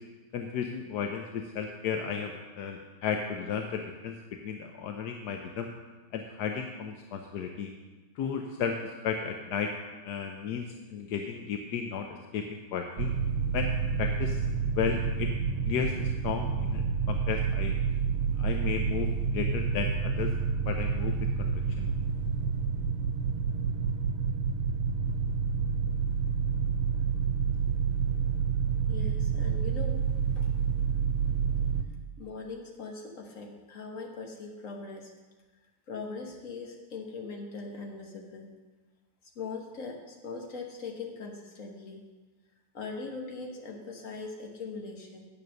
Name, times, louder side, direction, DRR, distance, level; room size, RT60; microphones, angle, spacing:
voice 1, 0.3-4.2 4.4-5.7 6.1-7.7 8.2-9.7 10.0-12.1 12.3-13.1 13.5-14.4 14.8-15.3 15.7-17.8 18.4-20.3 20.6-21.9, left 7 dB, 65° left, 4 dB, 1.1 m, -34 dB
sound 1, 13.0-31.8, right 6 dB, 85° right, 1.5 m, -29 dB
voice 2, 28.9-30.0 30.4-30.5 32.2-35.1 35.9-38.5 39.3-42.0 42.7-45.3, left 4 dB, 45° left, 1 dB, 1.6 m, -40 dB
9.4 x 7.1 x 6.4 m, 1.3 s
omnidirectional pair, 2.2 m